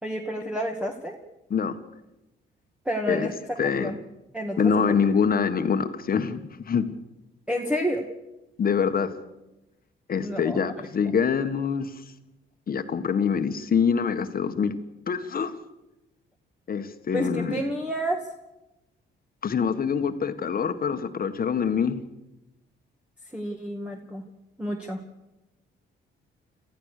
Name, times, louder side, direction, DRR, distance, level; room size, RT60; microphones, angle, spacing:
voice 1, 0.0-1.2 2.9-4.0 4.3-5.1 7.5-8.1 10.2-11.1 17.1-18.3 23.3-24.2 24.6-25.0, equal, 5° right, 1 dB, 2.2 m, -30 dB
voice 2, 3.6-3.9 4.6-6.8 8.6-9.1 10.1-11.9 12.7-14.7 15.1-15.5 16.7-17.6 19.4-22.0, left 6 dB, 45° left, 8 dB, 1.7 m, -25 dB
27.5 x 15.0 x 6.8 m, 0.97 s
cardioid pair, 90°, 20 cm